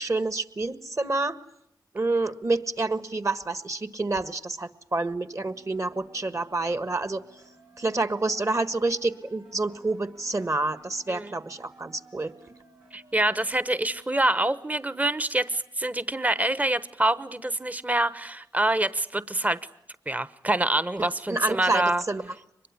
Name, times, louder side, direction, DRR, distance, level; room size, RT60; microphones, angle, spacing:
voice 1, 0.0-1.4 1.9-7.2 7.8-12.3 21.3-22.2, right 2 dB, 40° right, 12 dB, 1.6 m, -28 dB
sound 1, 5.1-15.1, right 3 dB, 90° right, 5.9 m, -56 dB
voice 2, 12.9-19.6 20.1-22.0, right 1 dB, 20° right, 15 dB, 1.0 m, -26 dB
23.5 x 21.5 x 9.7 m, 0.78 s
cardioid pair, 45°, 8 cm